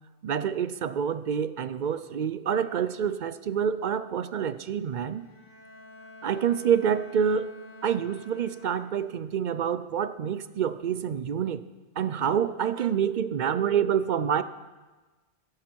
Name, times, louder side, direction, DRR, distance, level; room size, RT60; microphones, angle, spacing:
voice 1, 0.2-5.3 6.2-7.5 7.8-11.6 12.0-14.4, right 8 dB, 55° right, 14 dB, 0.6 m, -27 dB
Bowed string instrument, 5.1-9.2, left 2 dB, 90° left, 4.5 m, -49 dB
16.5 x 14.0 x 4.5 m, 1.3 s
omnidirectional pair, 1.1 m